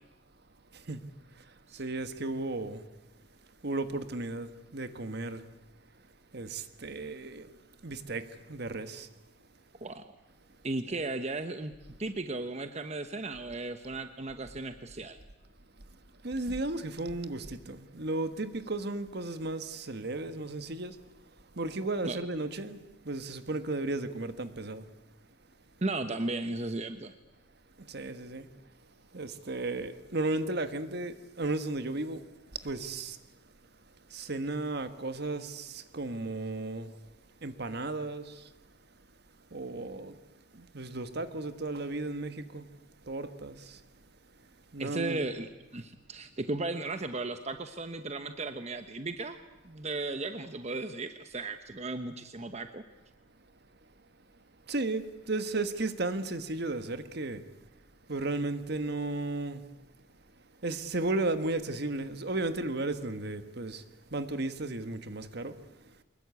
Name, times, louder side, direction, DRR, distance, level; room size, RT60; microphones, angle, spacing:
voice 1, 0.7-1.4 1.7-2.8 3.6-5.4 6.3-7.6 7.8-9.1 10.9-11.0 16.2-21.0 21.5-24.9 27.8-28.5 29.1-32.2 32.6-33.2 34.1-37.0 37.4-38.5 39.5-40.2 40.5-42.7 43.0-43.8 44.7-45.2 54.7-57.5 58.1-59.6 60.6-63.8 64.1-65.9, right 2 dB, 60° right, 1.5 m, -34 dB
voice 2, 10.6-11.7 12.0-15.2 22.0-22.2 25.8-27.1 44.8-49.4 49.6-52.8, right 2 dB, 35° right, 1.1 m, -35 dB
24.0 x 21.0 x 8.4 m
head